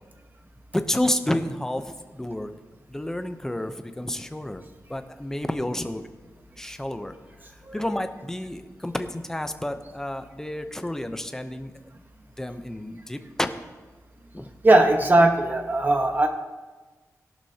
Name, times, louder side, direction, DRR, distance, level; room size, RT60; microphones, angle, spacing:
voice 1, 0.7-1.8 2.1-2.5 2.9-4.6 4.9-6.1 6.6-7.1 7.7-11.7 12.4-13.5 14.3-14.5, left 1 dB, 10° left, 8 dB, 0.8 m, -30 dB
voice 2, 14.6-16.3, right 2 dB, 30° right, 4 dB, 1.3 m, -19 dB
17.5 x 12.0 x 2.9 m, 1.3 s
wide cardioid pair, 105°, 6 cm